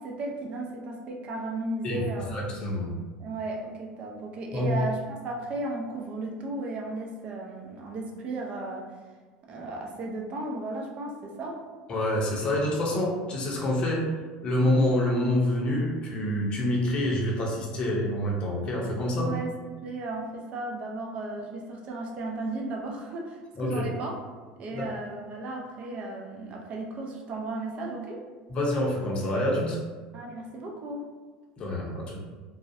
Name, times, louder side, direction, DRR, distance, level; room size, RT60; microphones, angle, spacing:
voice 1, 0.0-2.3 3.2-8.9 9.5-11.6 19.2-19.5 19.8-24.1 24.6-28.2 30.1-31.0, right 2 dB, 40° right, 0 dB, 0.4 m, -35 dB
voice 2, 2.3-2.9 4.5-4.8 11.9-14.0 14.4-19.3 23.6-23.8 24.7-24.8 28.5-29.8 31.6-32.2, left 1 dB, 35° left, -2 dB, 0.6 m, -27 dB
2.4 x 2.0 x 2.6 m, 1.4 s
supercardioid pair, 125°, 3 cm